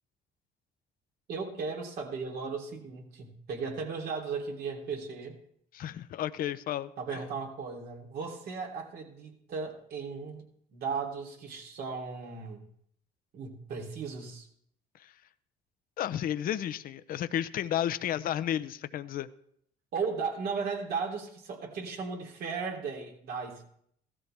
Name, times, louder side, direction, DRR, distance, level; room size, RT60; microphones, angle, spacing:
voice 1, 1.3-5.4 7.0-10.4 10.7-12.6 13.3-14.5 19.9-23.6, right 5 dB, 70° right, 0 dB, 3.3 m, -36 dB
voice 2, 5.7-6.9 16.0-19.3, left 11 dB, 60° left, 12 dB, 0.7 m, -32 dB
16.0 x 13.5 x 3.4 m, 0.67 s
cardioid pair, 110°, 17 cm